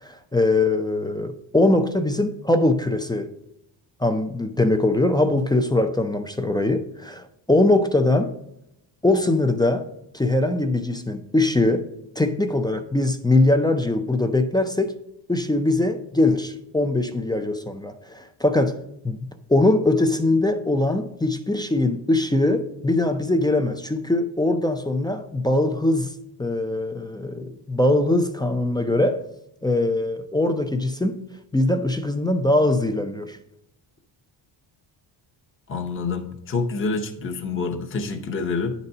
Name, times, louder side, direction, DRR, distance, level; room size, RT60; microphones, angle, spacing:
voice 1, 0.0-3.3 4.0-8.3 9.0-9.9 10.1-11.9 12.2-14.9 15.3-18.8 19.0-19.2 19.5-29.2 29.6-31.2 31.5-33.4, left 2 dB, 10° left, 0.4 m, -22 dB
voice 2, 35.7-38.7, left 4 dB, 25° left, 0.8 m, -27 dB
9.7 x 4.1 x 5.4 m
cardioid pair, 145°, 46 cm